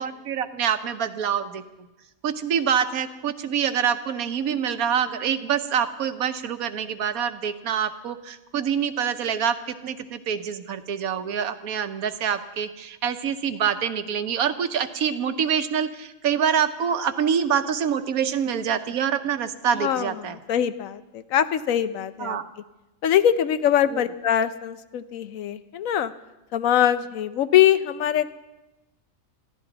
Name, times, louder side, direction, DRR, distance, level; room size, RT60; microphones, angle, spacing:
voice 1, 0.0-1.6 2.2-20.4 22.2-22.5 23.9-24.0, right 8 dB, 85° right, 10 dB, 1.3 m, -26 dB
voice 2, 19.8-22.4 23.0-26.1 26.5-28.3, left 10 dB, 70° left, 13 dB, 1.0 m, -23 dB
21.5 x 14.5 x 4.0 m, 1.0 s
omnidirectional pair, 1.5 m